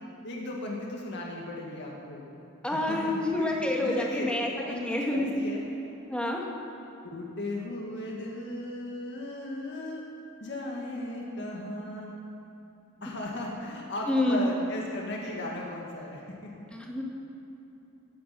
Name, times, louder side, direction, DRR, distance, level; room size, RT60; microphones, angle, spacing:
voice 1, 0.2-2.2 2.7-4.3 4.6-5.7 7.0-10.0 10.4-12.3 13.0-16.5, left 1 dB, 55° left, -2 dB, 2.1 m, -36 dB
voice 2, 2.6-4.5 4.8-5.3 6.1-6.4 14.1-14.4 16.7-17.0, left 1 dB, 5° left, -2 dB, 2.0 m, -28 dB
18.5 x 9.8 x 7.7 m, 2.9 s
head